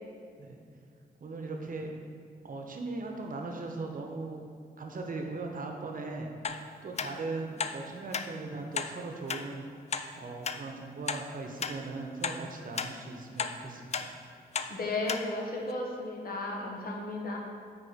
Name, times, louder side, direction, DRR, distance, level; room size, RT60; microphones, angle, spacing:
voice 1, 1.2-1.9 2.4-4.4 4.8-6.3 6.8-9.7 10.2-14.1, right 3 dB, 55° right, 2 dB, 0.9 m, -39 dB
sound 1, 6.4-6.6 7.0-7.1 7.6-7.8 8.1-8.3 8.7-8.9 9.3-9.4 9.9-10.0 10.4-10.6 11.1-11.2 11.6-11.8 12.2-12.4 12.8-12.9 13.4-13.5 13.9-14.1 14.5-14.7 15.1-15.2 15.7-15.8, left 6 dB, 40° left, 0.4 m, -33 dB
voice 2, 14.7-17.4, left 2 dB, 60° left, -1 dB, 1.1 m, -34 dB
5.0 x 4.3 x 5.0 m, 2.2 s
cardioid pair, 60°, 17 cm